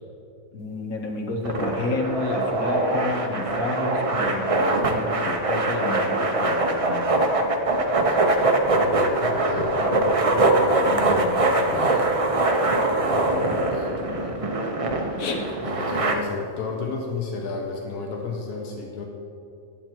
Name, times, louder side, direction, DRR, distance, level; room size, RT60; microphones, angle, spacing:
voice 1, 0.5-7.1 10.8-12.3 15.2-15.4, left 2 dB, 65° left, 1 dB, 1.5 m, -30 dB
sound 1, 1.4-16.1, right 2 dB, 50° right, 0.4 m, -23 dB
voice 2, 8.7-12.1 13.0-14.4 15.6-19.1, left 4 dB, 80° left, 1 dB, 1.4 m, -33 dB
11.0 x 7.5 x 4.5 m, 2.7 s
omnidirectional pair, 1.7 m